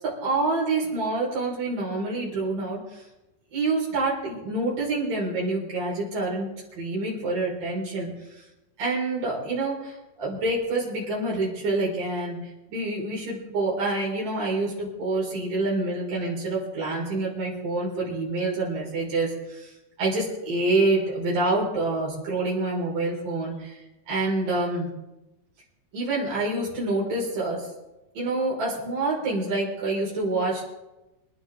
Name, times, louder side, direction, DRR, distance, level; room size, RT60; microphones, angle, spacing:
voice 1, 0.2-3.0 3.5-6.5 6.8-8.1 8.8-12.4 12.7-19.7 20.0-23.8 24.1-24.9 25.9-27.7 28.2-30.7, right 2 dB, 60° right, -5 dB, 7.5 m, -27 dB
27.5 x 11.0 x 4.1 m, 0.98 s
omnidirectional pair, 4.5 m